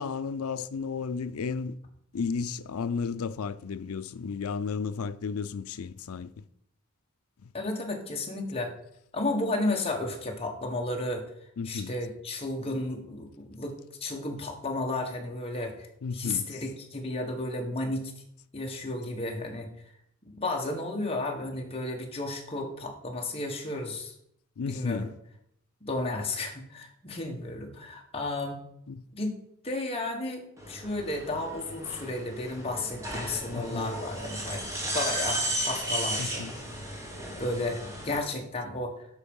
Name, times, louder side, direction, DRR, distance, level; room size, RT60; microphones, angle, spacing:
voice 1, 0.0-1.8 2.1-6.4 7.4-7.5 11.6-11.9 16.0-16.6 24.6-25.1 28.9-29.0 33.5-33.9 36.2-36.5, left 5 dB, 75° left, 0.5 m, -33 dB
voice 2, 7.5-8.7 9.1-11.2 11.6-15.9 16.1-18.1 18.5-19.7 20.2-24.1 24.7-25.1 25.8-28.6 29.1-29.4 29.6-30.4 30.7-34.7 34.9-36.5 37.4-39.1, left 2 dB, 25° left, 1.5 m, -33 dB
sound 1, 30.6-38.2, right 1 dB, 15° right, 1.6 m, -34 dB
8.2 x 5.8 x 5.4 m
head